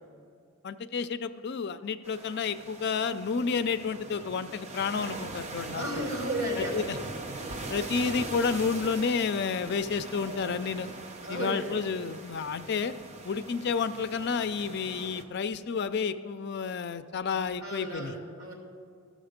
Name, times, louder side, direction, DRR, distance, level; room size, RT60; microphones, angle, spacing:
voice 1, 0.6-6.0 6.6-7.0 7.7-10.9 11.3-12.9 13.2-18.1, left 5 dB, 50° left, 12 dB, 0.4 m, -30 dB
sound 1, 2.0-15.2, right 3 dB, 30° right, 0.6 m, -41 dB
voice 2, 5.8-6.7 10.2-10.4 11.2-11.7 17.6-18.5, right 1 dB, 75° right, -1 dB, 2.8 m, -33 dB
14.5 x 6.4 x 5.1 m, 2.2 s
head